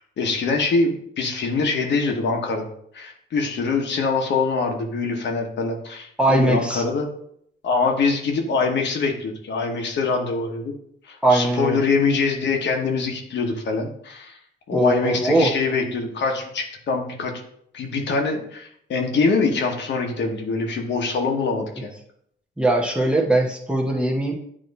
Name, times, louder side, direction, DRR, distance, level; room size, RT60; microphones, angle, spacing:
voice 1, 0.2-7.1 7.6-10.7 11.1-14.4 14.7-17.3 17.7-21.9, left 4 dB, 65° left, 2 dB, 1.1 m, -24 dB
voice 2, 6.2-6.8 11.2-11.8 14.7-15.5 22.6-24.3, right 2 dB, 5° right, -2 dB, 1.1 m, -20 dB
8.8 x 3.0 x 4.1 m, 0.69 s
cardioid pair, 90°, 20 cm